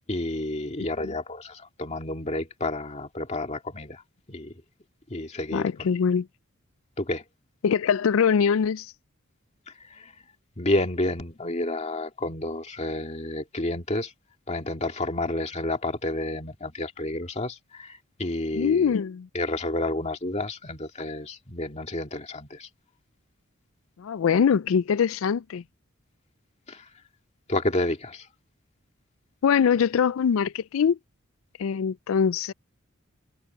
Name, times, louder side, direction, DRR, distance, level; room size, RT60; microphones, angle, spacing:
voice 1, 0.1-4.0 4.3-4.5 5.1-5.6 7.0-7.2 10.0-10.1 10.6-14.1 14.5-19.0 19.3-22.7 26.7-26.9 27.5-28.3, left 1 dB, 35° left, 2.2 m, -30 dB
voice 2, 5.5-6.3 7.6-8.9 18.5-19.3 24.0-25.6 29.4-31.0 31.6-32.5, left 7 dB, 75° left, 0.4 m, -23 dB
head